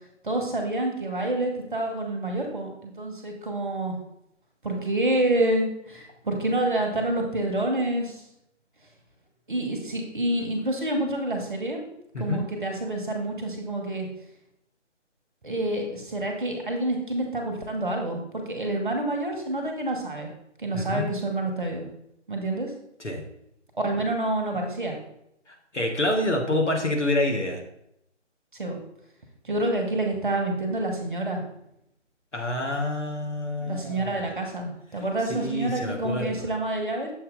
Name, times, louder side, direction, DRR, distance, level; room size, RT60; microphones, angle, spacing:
voice 1, 0.2-4.0 4.6-8.2 9.5-11.8 12.2-14.1 15.4-20.3 20.6-21.9 22.3-22.7 23.8-25.0 28.5-28.8 29.4-31.4 33.6-37.1, right 1 dB, 40° right, 3 dB, 1.2 m, -28 dB
voice 2, 20.7-21.1 23.0-23.2 25.5-27.6 32.3-34.3 35.3-36.5, left 1 dB, 70° left, 2 dB, 1.5 m, -27 dB
7.0 x 4.3 x 3.8 m, 0.77 s
figure-of-eight pair, 155°, 37 cm